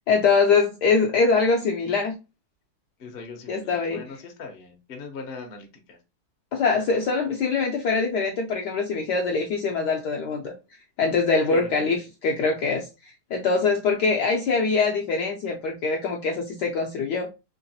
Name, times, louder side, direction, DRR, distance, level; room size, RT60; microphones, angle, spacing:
voice 1, 0.1-2.1 3.5-4.1 6.5-10.5 11.0-17.3, left 4 dB, 75° left, 0.9 m, -23 dB
voice 2, 3.0-6.0 11.5-11.8, left 4 dB, 60° left, 0.6 m, -40 dB
3.8 x 2.9 x 2.7 m
omnidirectional pair, 2.3 m